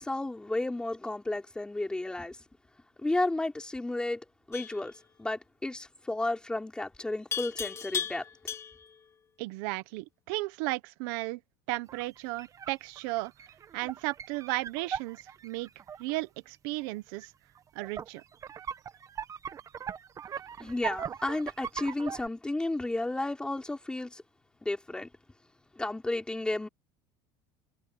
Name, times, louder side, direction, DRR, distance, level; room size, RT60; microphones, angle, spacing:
voice 1, 0.0-2.4 3.0-4.9 5.2-8.2 20.6-24.2 24.6-25.1 25.8-26.7, left 2 dB, 10° left, 5.2 m, -32 dB
Livestock farm animals working animals, 4.5-4.9 7.3-8.9, left 8 dB, 25° left, 5.1 m, -36 dB
voice 2, 9.4-11.4 11.7-13.3 13.7-15.7 16.0-17.3 17.7-18.2, right 21 dB, 75° right, 1.2 m, -34 dB
sound 1, 11.9-16.2 17.2-17.3 17.6-22.3, right 8 dB, 30° right, 1.3 m, -40 dB
cardioid pair, 135°, 11 cm